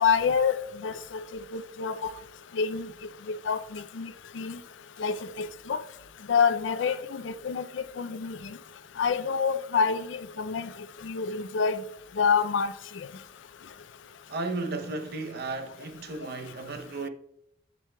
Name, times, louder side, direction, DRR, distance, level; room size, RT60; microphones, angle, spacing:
voice 1, 0.0-0.6 0.8-1.2 1.5-2.1 2.6-2.9 3.3-4.6 5.0-5.8 6.3-8.4 9.0-10.7 11.0-11.8 12.2-12.7, left 6 dB, 75° left, 0.4 m, -27 dB
voice 2, 14.3-17.1, right 3 dB, 60° right, 0.6 m, -34 dB
7.6 x 7.4 x 2.2 m
head